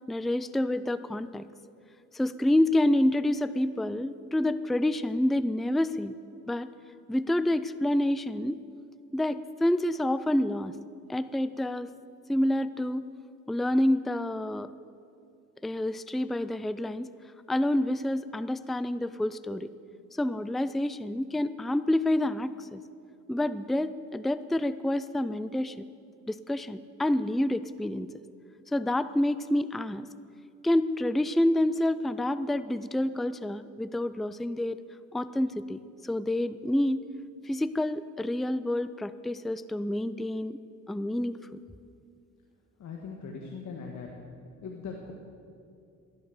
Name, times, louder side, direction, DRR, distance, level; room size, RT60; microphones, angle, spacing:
voice 1, 0.1-1.5 2.1-6.2 6.5-6.7 7.1-8.6 9.1-10.7 11.1-11.9 12.3-13.1 13.5-14.7 15.6-17.1 17.5-19.7 20.2-22.8 23.3-25.9 26.3-28.1 28.7-30.1 30.6-34.8 35.1-37.1 37.4-40.6 40.9-41.6, left 1 dB, ahead, 14 dB, 0.4 m, -28 dB
voice 2, 42.8-44.1 44.6-45.1, left 5 dB, 65° left, 0 dB, 1.8 m, -40 dB
14.0 x 11.0 x 7.8 m, 2.4 s
cardioid pair, 90°, 30 cm